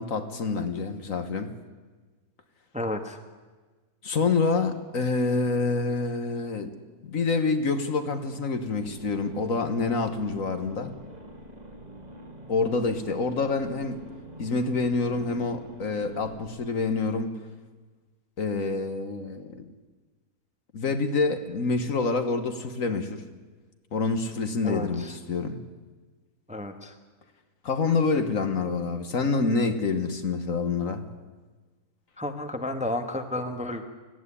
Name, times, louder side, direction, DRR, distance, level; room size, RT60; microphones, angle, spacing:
voice 1, 0.0-1.5 4.0-6.7 7.0-11.0 12.5-14.0 14.4-17.4 18.4-19.7 20.7-23.2 23.9-25.6 27.6-31.0, left 4 dB, 60° left, 8 dB, 1.6 m, -27 dB
voice 2, 2.7-3.2 24.6-25.1 26.5-26.9 32.2-33.9, left 1 dB, 5° right, 6 dB, 1.2 m, -32 dB
sound 1, 8.7-16.5, right 1 dB, 25° right, 2.0 m, -46 dB
19.0 x 15.0 x 9.9 m, 1.3 s
omnidirectional pair, 1.7 m